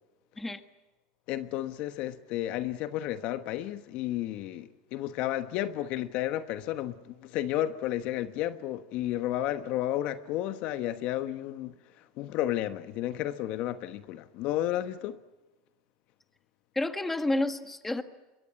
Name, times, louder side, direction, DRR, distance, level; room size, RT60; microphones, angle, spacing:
voice 1, 1.3-15.2, left 13 dB, 55° left, 1.1 m, -32 dB
voice 2, 16.7-18.0, left 2 dB, 10° left, 1.6 m, -29 dB
24.5 x 22.5 x 8.8 m
supercardioid pair, 125°, 2 cm